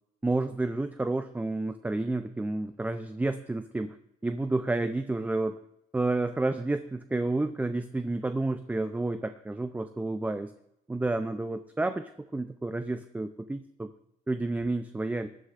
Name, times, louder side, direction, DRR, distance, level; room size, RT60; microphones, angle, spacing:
voice 1, 0.2-4.0 4.2-5.6 5.9-10.5 10.9-13.9 14.3-15.3, right 2 dB, 10° right, 9 dB, 0.5 m, -30 dB
19.0 x 11.5 x 2.5 m, 0.79 s
cardioid pair, 95°, 14 cm